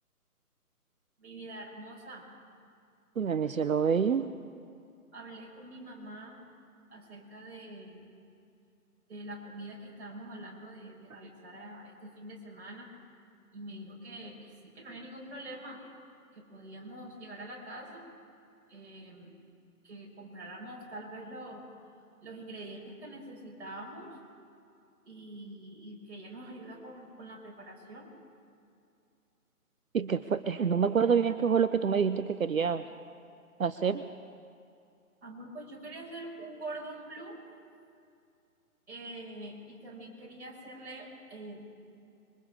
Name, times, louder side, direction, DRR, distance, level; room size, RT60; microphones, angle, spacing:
voice 1, 1.2-2.2 5.1-6.4 6.9-8.0 9.1-12.9 13.5-15.8 16.3-18.1 18.7-19.4 19.8-21.6 22.2-24.2 25.1-28.1 35.2-37.4 38.9-41.6, right 1 dB, 45° right, -3 dB, 5.9 m, -45 dB
voice 2, 3.2-4.3 29.9-32.8 33.6-34.0, right 6 dB, 60° right, 11 dB, 0.8 m, -27 dB
26.0 x 23.5 x 4.9 m, 2.5 s
figure-of-eight pair, 165°, 45 cm